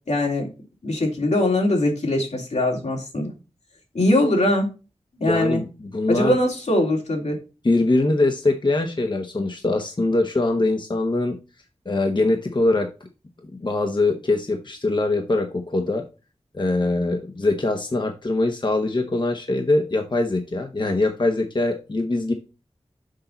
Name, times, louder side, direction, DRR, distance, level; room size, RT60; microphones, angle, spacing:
voice 1, 0.1-0.5 0.8-3.3 3.9-4.7 5.2-5.6 6.1-7.4, left 1 dB, 80° left, 1 dB, 2.8 m, -21 dB
voice 2, 5.2-6.4 7.6-11.4 11.8-12.9 13.4-16.1 16.5-22.3, left 2 dB, 45° left, 4 dB, 1.0 m, -22 dB
6.5 x 5.6 x 4.0 m, 0.31 s
wide cardioid pair, 60°, 11 cm